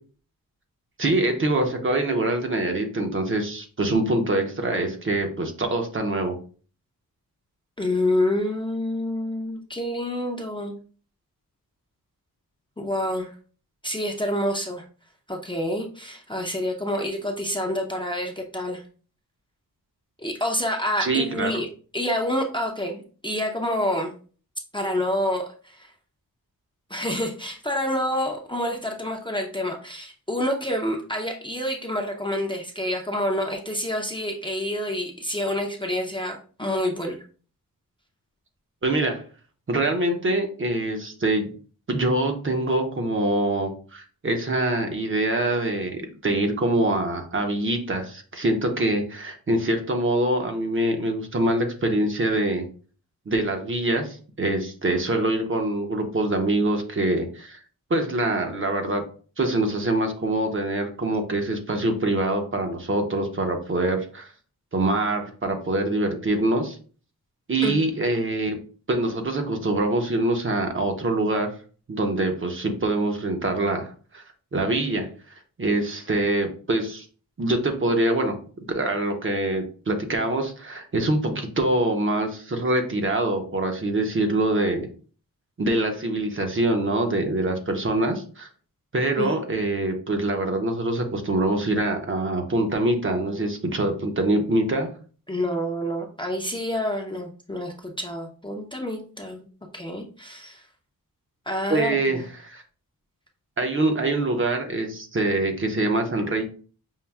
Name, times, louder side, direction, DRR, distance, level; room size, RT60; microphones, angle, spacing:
voice 1, 1.0-6.4 21.0-21.5 38.8-39.2 39.7-41.5 41.9-52.7 53.3-57.6 57.9-59.0 59.4-64.3 64.7-66.8 67.5-68.6 68.9-71.5 71.9-74.2 74.5-75.1 75.6-77.0 77.4-78.3 78.7-84.9 85.6-88.5 88.9-94.9 101.7-102.6 103.6-106.4, right 2 dB, 35° right, 4 dB, 0.7 m, -24 dB
voice 2, 7.8-10.7 12.8-13.3 13.8-14.8 15.3-18.8 20.2-21.7 21.9-24.1 24.7-25.9 26.9-37.2 67.6-67.7 89.2-89.4 95.3-99.4 99.7-100.6 101.5-102.2, left 1 dB, 15° left, 1 dB, 0.5 m, -28 dB
5.5 x 2.5 x 2.3 m, 0.40 s
wide cardioid pair, 100°, 35 cm